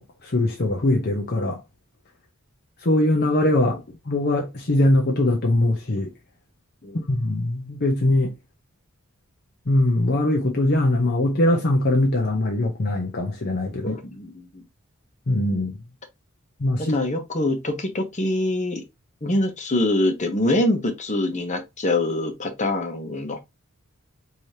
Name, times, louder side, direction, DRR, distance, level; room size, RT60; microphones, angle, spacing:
voice 1, 0.0-1.6 2.8-3.8 4.1-6.1 7.1-8.3 9.7-14.0 15.3-15.8 16.6-17.0, left 1 dB, 50° left, 0.8 m, -21 dB
voice 2, 13.8-14.6 16.8-18.8 19.2-23.4, left 1 dB, 35° left, 1.1 m, -24 dB
4.9 x 3.0 x 2.8 m
head